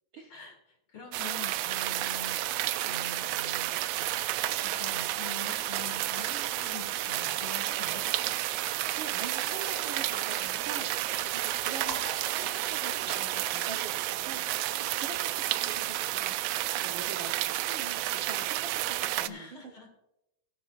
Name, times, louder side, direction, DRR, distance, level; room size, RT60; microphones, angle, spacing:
voice 1, 0.3-4.2 4.6-8.0 19.2-19.9, left 3 dB, 45° left, 2 dB, 2.9 m, -45 dB
sound 1, 1.1-19.3, right 15 dB, 90° right, 1.4 m, -31 dB
sound 2, 7.5-13.3, right 2 dB, 20° right, 1.7 m, -46 dB
voice 2, 8.7-19.7, right 4 dB, 60° right, 2 dB, 1.3 m, -45 dB
18.0 x 10.0 x 2.5 m, 0.87 s
omnidirectional pair, 3.4 m